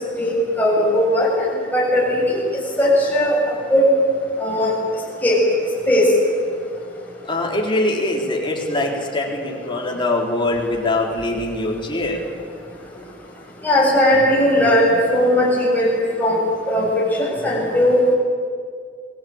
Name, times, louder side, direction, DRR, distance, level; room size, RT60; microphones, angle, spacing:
voice 1, 0.2-2.4 2.8-3.4 3.7-3.9 4.4-4.7 5.2-5.4 5.9-6.1 13.6-18.0, left 1 dB, 10° left, -4 dB, 7.1 m, -18 dB
voice 2, 7.3-12.3, left 2 dB, 25° left, -1 dB, 4.0 m, -23 dB
27.0 x 20.5 x 8.9 m, 2.1 s
head